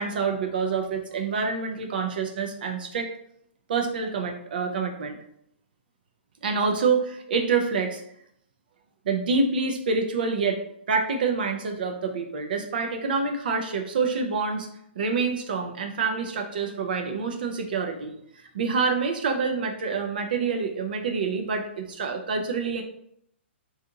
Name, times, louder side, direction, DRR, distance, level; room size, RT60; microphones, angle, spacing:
voice 1, 0.0-3.1 3.7-5.2 6.4-8.0 9.1-10.6 10.9-14.7 15.0-18.1 18.5-22.8, right 4 dB, 50° right, 4 dB, 0.4 m, -27 dB
2.7 x 2.4 x 3.8 m, 0.72 s
hypercardioid pair, 175°, 6 cm